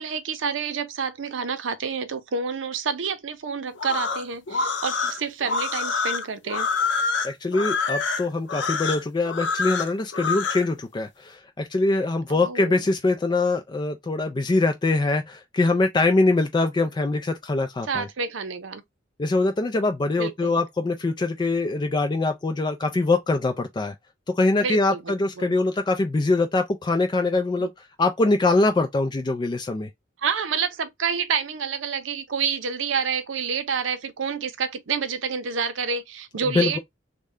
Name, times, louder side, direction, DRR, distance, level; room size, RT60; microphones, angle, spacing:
voice 1, 0.0-6.7 12.3-12.8 17.8-18.8 20.2-20.6 24.6-25.6 27.6-27.7 30.2-36.8, right 6 dB, 90° right, 0.6 m, -28 dB
sound 1, 3.7-10.7, left 4 dB, 65° left, 0.7 m, -26 dB
voice 2, 7.2-18.1 19.2-23.9 24.3-27.7 28.0-29.9 36.5-36.8, left 2 dB, 25° left, 0.3 m, -23 dB
3.2 x 2.1 x 3.5 m
head